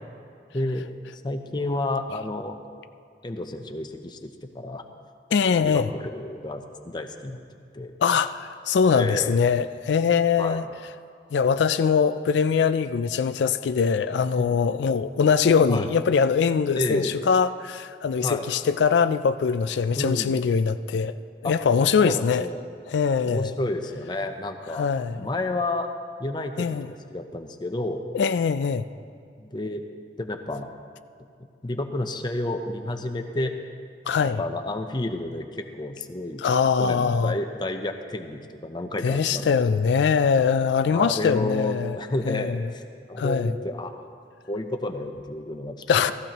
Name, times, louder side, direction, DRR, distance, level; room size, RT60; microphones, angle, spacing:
voice 1, 0.5-0.9 1.1-2.6 3.2-4.8 5.6-7.9 8.9-9.4 10.4-10.6 14.4-14.6 15.7-15.9 16.8-17.1 18.2-18.4 20.0-20.4 21.4-21.5 22.0-22.6 23.2-24.9 25.1-25.9 26.2-26.7 27.1-28.0 29.4-29.8 30.2-30.7 31.6-33.6 34.4-36.4 36.8-39.8 40.9-42.8 43.1-44.0 44.5-45.8, left 2 dB, 25° left, 6 dB, 0.7 m, -30 dB
voice 2, 5.3-5.9 8.0-10.6 11.3-21.1 21.4-22.5 22.9-23.5 24.7-25.2 26.6-26.9 28.1-28.8 34.1-34.4 36.4-37.3 39.0-42.0 42.3-42.6 43.2-43.5 45.9-46.1, left 6 dB, 80° left, 11 dB, 0.4 m, -22 dB
15.5 x 15.0 x 3.0 m, 2.4 s
head